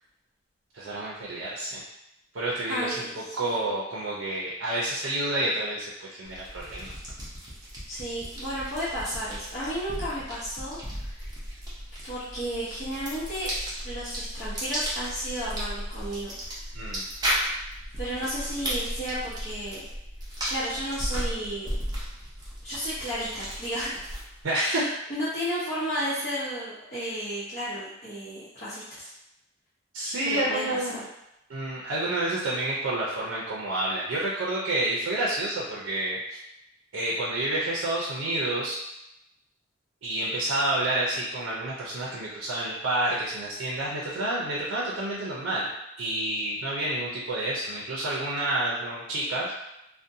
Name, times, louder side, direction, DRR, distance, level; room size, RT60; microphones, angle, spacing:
voice 1, 0.7-1.8 2.3-3.1 3.3-6.9 16.7-17.0 24.4-24.8 29.9-31.0 31.5-36.4 36.9-38.8 40.0-45.7 46.0-49.5, right 1 dB, 75° right, -5 dB, 0.5 m, -29 dB
voice 2, 2.7-3.6 7.9-11.2 12.0-13.5 13.8-16.3 17.9-19.9 20.3-21.7 22.6-24.0 24.6-29.1 30.2-31.0, equal, 40° left, -13 dB, 0.8 m, -33 dB
sound 1, 6.2-24.4, equal, 20° right, 0.6 m, -35 dB
2.5 x 2.1 x 2.6 m, 0.86 s
head